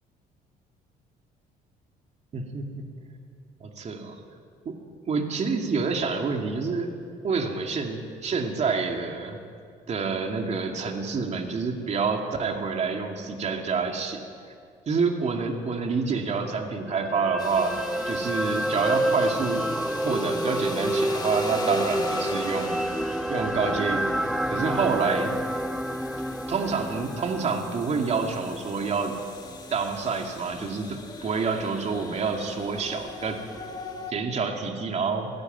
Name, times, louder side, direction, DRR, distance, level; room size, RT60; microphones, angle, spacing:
voice 1, 2.3-2.8 3.6-4.2 4.7-4.8 5.1-6.9 7.2-9.4 9.9-14.2 14.9-19.7 20.0-25.3 26.5-29.1 29.7-33.4 34.1-35.3, right 5 dB, 40° right, 3 dB, 2.5 m, -28 dB
sound 1, 16.9-29.2 29.5-29.7, right 1 dB, ahead, 0.5 m, -29 dB
sound 2, 17.4-34.1, left 3 dB, 25° left, 2.5 m, -41 dB
19.5 x 16.5 x 9.3 m, 2.3 s
cardioid pair, 110°, 17 cm